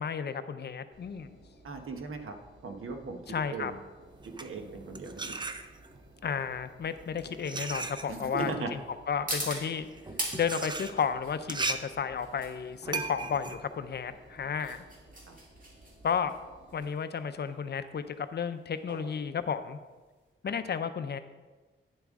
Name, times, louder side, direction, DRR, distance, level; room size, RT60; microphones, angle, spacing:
voice 1, 0.0-1.4 3.3-3.7 6.2-8.8 9.1-9.9 10.3-14.8 16.0-16.3 16.7-19.8 20.4-21.2, left 7 dB, 55° left, 11 dB, 0.5 m, -32 dB
Engine, 0.9-16.8, right 2 dB, 60° right, 2.3 m, -57 dB
voice 2, 1.6-3.2 3.5-3.8 4.4-5.4 8.1-8.7 15.3-15.4 20.4-20.6, right 4 dB, 85° right, 5 dB, 1.0 m, -38 dB
sound 1, 3.7-20.3, right 1 dB, 40° right, 1.9 m, -43 dB
sound 2, 4.1-6.1 6.9-14.8, right 3 dB, 20° right, 0.4 m, -38 dB
9.8 x 7.2 x 3.6 m, 1.2 s
wide cardioid pair, 155°, 21 cm